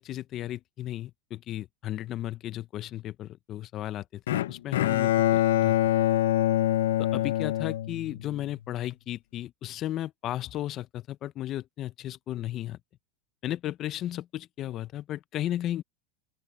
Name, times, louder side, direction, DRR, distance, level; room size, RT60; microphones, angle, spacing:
voice 1, 0.0-5.8 7.0-12.8 13.4-15.8, left 13 dB, 40° left, 0.8 m, -35 dB
Bowed string instrument, 4.3-8.5, left 13 dB, 80° left, 0.8 m, -25 dB
open air
supercardioid pair, 125°, 0 cm